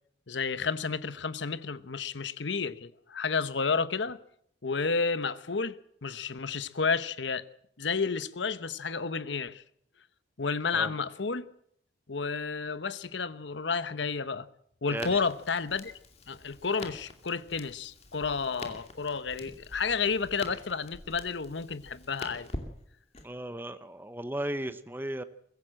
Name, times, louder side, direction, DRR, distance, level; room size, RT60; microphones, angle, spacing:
voice 1, 0.3-4.2 4.6-7.4 7.8-9.6 10.4-11.5 12.1-14.5 14.8-15.9 16.3-22.5, left 5 dB, 70° left, 0.9 m, -31 dB
voice 2, 14.9-15.2 23.2-25.2, right 1 dB, 10° right, 0.9 m, -36 dB
Crackle, 15.0-23.3, left 2 dB, 35° left, 2.6 m, -45 dB
22.5 x 15.5 x 7.7 m
head